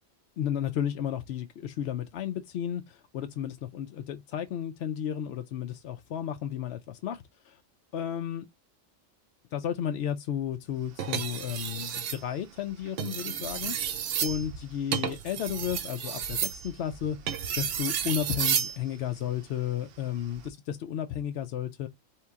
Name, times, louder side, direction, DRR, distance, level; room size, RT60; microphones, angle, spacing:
voice 1, 0.4-7.6 7.9-8.5 9.5-17.2 17.6-21.9, left 10 dB, 65° left, 0.8 m, -33 dB
sound 1, 11.0-12.2 12.9-18.8 20.2-20.5, right 8 dB, 80° right, 1.0 m, -32 dB
4.6 x 3.3 x 3.5 m
omnidirectional pair, 1.3 m